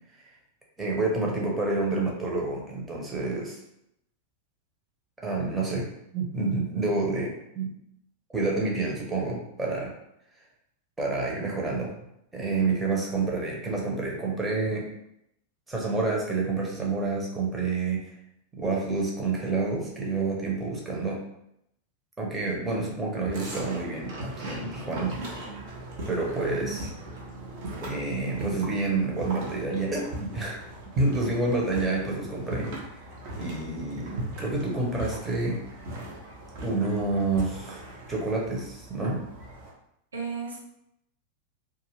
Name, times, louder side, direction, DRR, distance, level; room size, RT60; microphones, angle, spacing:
voice 1, 0.8-3.6 5.2-5.9 6.1-7.7 8.3-9.9 11.0-11.9 12.3-14.9 15.7-18.0 18.5-21.2 22.2-25.1 26.1-26.9 27.8-30.6 31.0-33.0 33.4-35.6 36.6-37.8 38.1-39.2, right 3 dB, 10° right, -3 dB, 0.8 m, -28 dB
sound 1, 23.2-39.7, right 1 dB, 50° right, 0.8 m, -39 dB
voice 2, 25.2-25.6 26.6-26.8 40.1-40.6, right 5 dB, 70° right, -4 dB, 0.9 m, -35 dB
2.4 x 2.4 x 3.2 m, 0.79 s
figure-of-eight pair, 90°, 0 cm